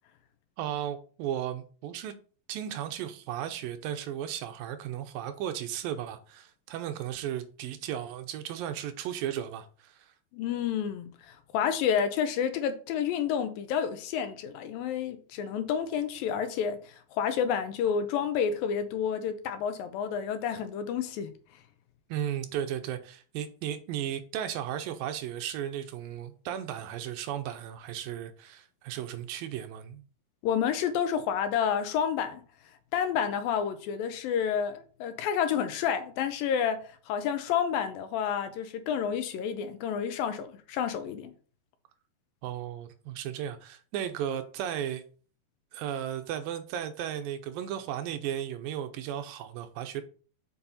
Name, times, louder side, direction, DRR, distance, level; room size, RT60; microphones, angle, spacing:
voice 1, 0.6-2.1 2.5-10.1 22.1-30.0 42.4-45.0 45.7-50.0, right 10 dB, 80° right, 2.3 m, -35 dB
voice 2, 10.3-21.3 30.4-32.4 32.9-36.8 37.1-41.3, left 8 dB, 80° left, 2.4 m, -29 dB
7.1 x 5.6 x 4.1 m
omnidirectional pair, 4.4 m